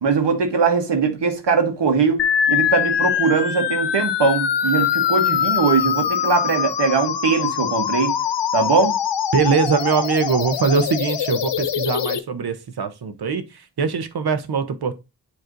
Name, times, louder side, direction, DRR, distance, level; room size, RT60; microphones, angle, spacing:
voice 1, 0.0-8.1 8.5-9.0, right 5 dB, 85° right, 1.4 m, -20 dB
sound 1, 2.2-12.2, left 8 dB, 85° left, 0.8 m, -23 dB
voice 2, 9.3-14.9, right 5 dB, 65° right, 1.0 m, -22 dB
9.3 x 3.2 x 3.8 m
wide cardioid pair, 125°, 41 cm